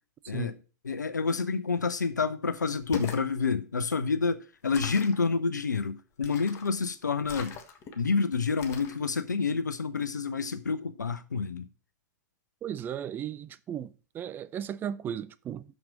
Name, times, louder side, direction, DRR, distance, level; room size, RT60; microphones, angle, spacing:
voice 1, 0.3-0.6 0.8-7.6 8.0-11.7, left 5 dB, 75° left, 0.6 m, -28 dB
sound 1, 2.8-3.3 4.7-5.2 6.2-6.7 7.2-8.0 8.6-9.0, left 6 dB, 30° left, 1.3 m, -41 dB
voice 2, 12.6-15.6, right 9 dB, 20° right, 0.5 m, -36 dB
6.4 x 5.9 x 7.3 m
figure-of-eight pair, 100°, 10 cm